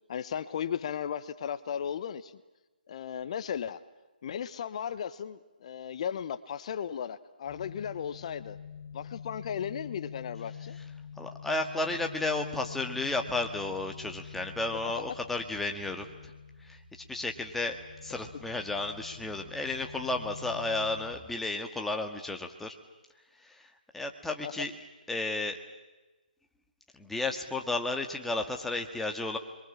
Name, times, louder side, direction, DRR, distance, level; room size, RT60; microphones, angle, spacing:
voice 1, 0.1-2.4 2.9-3.8 4.2-8.6 8.9-10.8 24.4-24.5, left 8 dB, 45° left, 14 dB, 1.1 m, -36 dB
sound 1, 7.5-21.2, left 6 dB, 20° left, 5.2 m, -46 dB
voice 2, 11.2-16.3 16.6-22.8 23.3-24.7 25.1-25.6 26.9-29.4, left 2 dB, 5° left, 3 dB, 1.7 m, -33 dB
30.0 x 23.0 x 7.3 m, 1.1 s
figure-of-eight pair, 145°, 5 cm